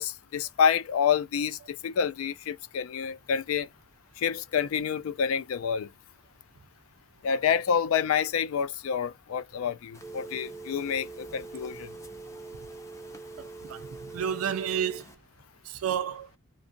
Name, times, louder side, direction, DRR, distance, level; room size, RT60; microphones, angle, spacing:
voice 1, 0.0-3.7 4.2-5.9 7.2-11.9, left 7 dB, 85° left, 0.3 m, -28 dB
Telephone, 9.9-15.1, right 3 dB, 15° left, 0.5 m, -43 dB
voice 2, 13.4-13.9 14.1-15.0 15.7-16.3, right 8 dB, 90° right, 0.4 m, -31 dB
2.7 x 2.4 x 2.5 m
head